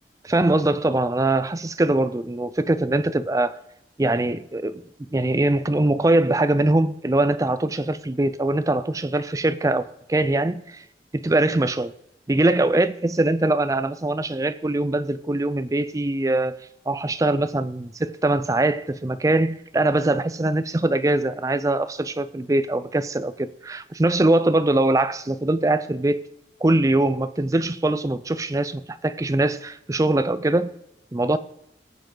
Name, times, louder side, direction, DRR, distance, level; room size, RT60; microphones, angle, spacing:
voice 1, 0.2-3.6 4.0-4.8 5.1-10.8 11.1-11.9 12.3-16.6 16.9-26.2 26.6-30.7 31.1-31.4, right 2 dB, 20° right, 0.4 m, -22 dB
18.5 x 7.6 x 3.9 m
head